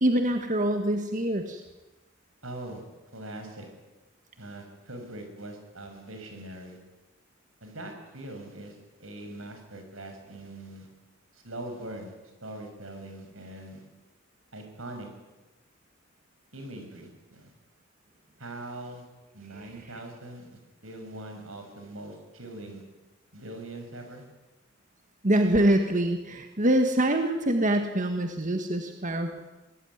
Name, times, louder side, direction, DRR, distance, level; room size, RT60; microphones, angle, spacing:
voice 1, 0.0-1.6 19.5-19.7 25.2-29.4, right 1 dB, 40° right, 5 dB, 1.6 m, -25 dB
voice 2, 2.4-2.8 3.1-3.7 4.4-6.8 7.6-10.9 11.3-12.1 12.4-13.8 14.5-15.1 16.5-17.5 18.4-19.1 19.3-22.8 23.3-24.2, right 1 dB, 85° right, 5 dB, 6.5 m, -42 dB
24.5 x 18.5 x 9.6 m, 1.1 s
head